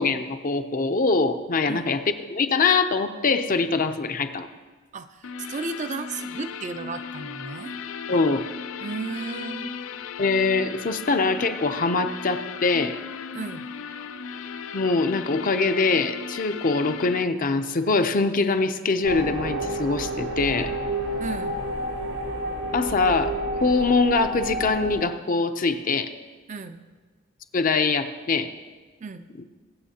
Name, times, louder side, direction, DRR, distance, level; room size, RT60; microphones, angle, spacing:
voice 1, 0.0-2.0 2.3-4.5 8.1-8.4 10.2-13.0 14.7-20.7 22.7-26.1 27.5-28.5, left 4 dB, 45° left, 8 dB, 0.6 m, -23 dB
voice 2, 4.9-7.7 8.8-9.7 13.3-13.7 21.2-21.6 26.5-26.8 29.0-29.3, right 4 dB, 35° right, 9 dB, 0.4 m, -34 dB
sound 1, 5.2-17.2, left 6 dB, 85° left, 0.5 m, -36 dB
sound 2, 19.0-25.0, right 1 dB, 70° right, 1.2 m, -30 dB
21.5 x 7.2 x 2.8 m, 1.4 s
head